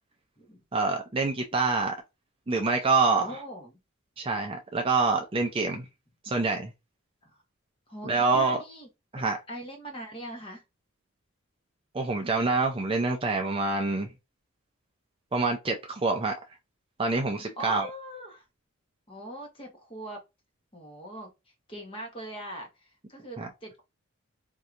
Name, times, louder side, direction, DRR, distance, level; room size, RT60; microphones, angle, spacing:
voice 1, 0.7-2.0 2.5-3.3 4.2-5.8 6.2-6.7 8.0-8.6 9.1-9.4 11.9-14.1 15.3-16.4 17.0-17.9 23.4-23.5, right 3 dB, 25° right, 0.5 m, -26 dB
voice 2, 3.2-3.8 7.2-7.3 7.9-8.9 9.1-10.6 17.6-18.4 19.1-20.2 20.7-21.3 21.7-23.8, right 1 dB, 25° left, 1.1 m, -41 dB
4.5 x 2.7 x 2.5 m
head